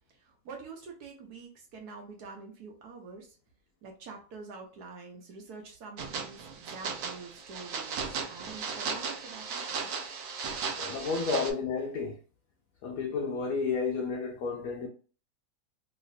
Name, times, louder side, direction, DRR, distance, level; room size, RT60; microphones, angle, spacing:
voice 1, 0.1-3.4 3.8-9.9, right 4 dB, 65° right, 1.1 m, -46 dB
sound 1, 6.0-11.5, right 5 dB, 80° right, 0.7 m, -36 dB
voice 2, 10.5-12.2 12.8-14.9, left 4 dB, 85° left, 0.7 m, -32 dB
3.1 x 3.0 x 2.6 m
omnidirectional pair, 2.1 m